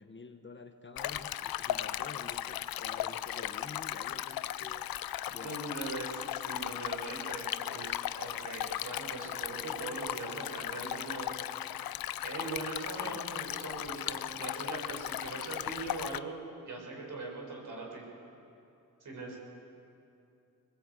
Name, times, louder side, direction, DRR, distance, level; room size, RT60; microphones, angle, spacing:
voice 1, 0.0-4.9 5.3-5.6 13.0-13.2 19.1-19.4, left 3 dB, 35° left, 7 dB, 1.4 m, -48 dB
Stream, 1.0-16.2, left 12 dB, 80° left, 0.6 m, -37 dB
voice 2, 5.3-11.3 12.2-16.4 16.7-18.0 19.0-19.4, right 3 dB, 60° right, -1 dB, 6.7 m, -41 dB
22.5 x 20.5 x 8.5 m, 2.8 s
cardioid pair, 80°, 34 cm